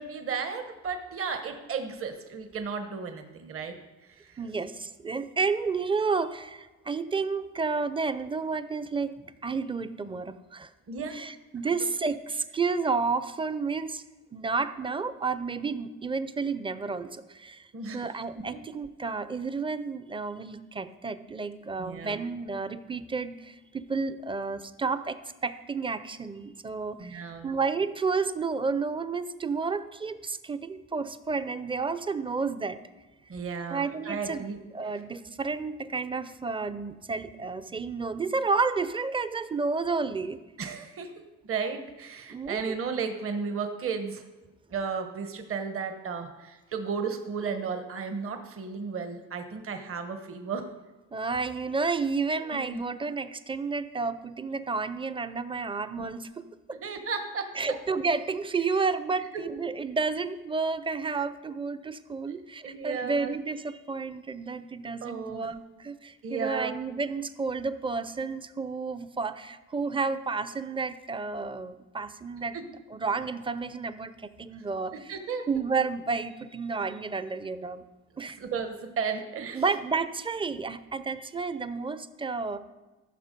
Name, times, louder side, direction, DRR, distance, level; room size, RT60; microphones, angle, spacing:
voice 1, 0.0-3.7 4.0-4.4 10.9-11.2 17.7-18.1 18.4-18.6 21.8-22.2 27.0-27.5 33.3-35.0 40.6-41.1 41.4-44.2 44.7-50.6 52.5-52.8 56.0-56.1 56.7-57.8 59.3-59.4 62.3-62.4 62.6-63.3 65.0-65.5 66.2-66.7 72.5-72.7 75.1-75.5 78.4-79.6, right 5 dB, 45° right, 7 dB, 1.1 m, -34 dB
voice 2, 4.4-10.7 11.1-14.0 14.3-17.7 17.9-32.8 33.7-34.5 34.7-40.4 42.3-42.8 51.1-56.8 57.6-72.6 72.9-75.1 75.5-77.8 78.2-78.4 79.5-82.6, right 4 dB, 15° right, 13 dB, 0.6 m, -31 dB
14.0 x 6.0 x 5.2 m, 1.2 s
cardioid pair, 90°, 30 cm